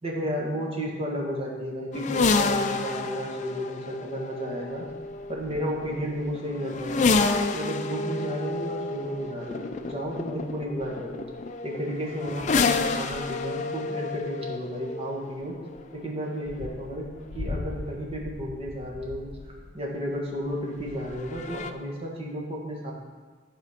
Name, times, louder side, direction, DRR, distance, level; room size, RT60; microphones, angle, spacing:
voice 1, 0.0-4.8 5.3-7.1 7.5-11.2 11.6-15.6 15.9-19.3 19.7-22.9, equal, 30° right, -2 dB, 1.5 m, -33 dB
sound 1, 1.9-19.7 20.8-21.7, left 3 dB, 40° left, 0.4 m, -30 dB
11.0 x 4.2 x 5.6 m, 1.4 s
head